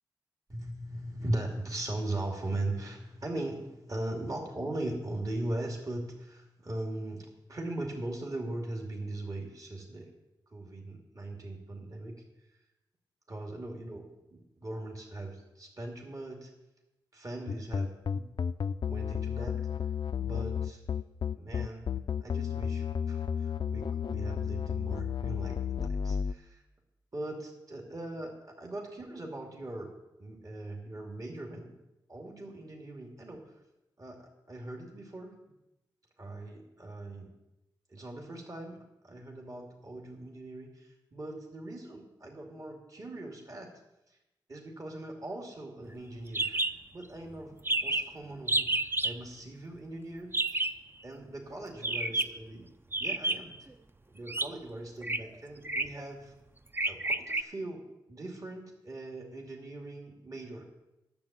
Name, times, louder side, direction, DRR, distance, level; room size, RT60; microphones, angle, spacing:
voice 1, 0.5-10.1 10.5-12.2 13.3-16.5 17.1-18.3 18.8-19.6 20.2-20.8 21.3-21.9 22.2-26.6 27.1-29.9 30.2-31.7 32.1-33.4 34.0-35.3 36.2-37.3 37.9-43.7 44.5-46.6 46.9-48.7 49.0-50.3 51.0-52.7 53.0-53.7 54.1-56.3 56.9-60.6, right 1 dB, 40° right, 0 dB, 2.4 m, -40 dB
sound 1, 17.5-26.3, left 7 dB, 60° left, 0.4 m, -32 dB
sound 2, 46.3-46.7 47.0-47.1 47.3-47.4 47.6-48.1 48.5-49.1 50.3-50.8 51.8-52.4 52.9-53.6 54.3-54.5 55.0-55.2 55.6-56.0 56.7-57.4, right 2 dB, 25° right, 0.6 m, -30 dB
10.5 x 7.3 x 7.4 m, 0.95 s
cardioid pair, 50°, 9 cm